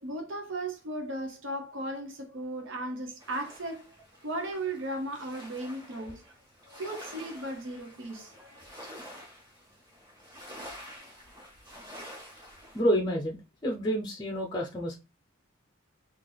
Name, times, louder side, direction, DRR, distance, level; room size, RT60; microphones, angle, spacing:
voice 1, 0.0-3.9 4.2-6.2 6.8-8.7, right 1 dB, 60° right, 0.7 m, -36 dB
sound 1, 3.2-12.8, equal, 20° right, 1.5 m, -48 dB
voice 2, 12.7-15.0, equal, 20° left, 0.5 m, -29 dB
3.2 x 2.4 x 3.9 m
head